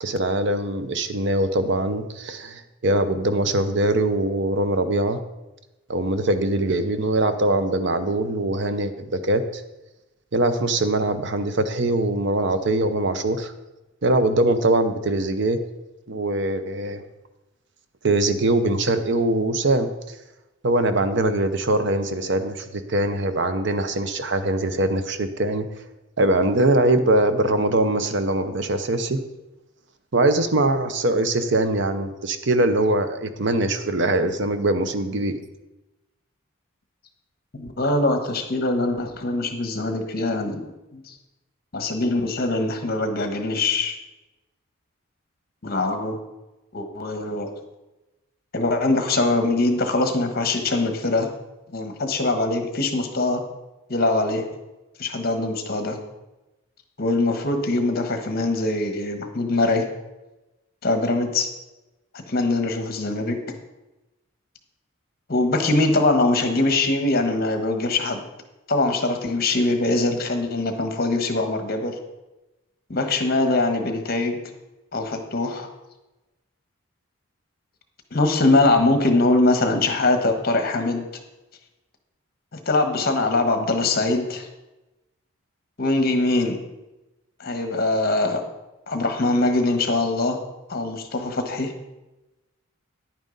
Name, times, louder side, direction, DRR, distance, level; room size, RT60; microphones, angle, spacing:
voice 1, 0.0-5.2 5.9-9.6 10.3-13.5 14.0-15.6 16.1-17.0 18.0-19.9 20.6-25.6 26.2-29.2 30.1-35.4, right 2 dB, 55° right, 10 dB, 0.7 m, -22 dB
voice 2, 37.5-40.6 40.9-41.1 41.7-44.0 45.6-46.2 46.7-47.5 48.5-51.3 51.7-53.4 53.9-54.4 55.0-56.0 57.0-59.9 60.8-61.5 62.3-63.4 65.3-68.2 68.7-71.9 72.9-74.4 74.9-75.7 78.1-81.0 82.5-84.5 85.8-86.6 87.4-88.4 88.9-90.4 90.7-91.7, left 2 dB, 45° left, 6 dB, 1.2 m, -22 dB
10.5 x 9.0 x 3.9 m, 1.0 s
head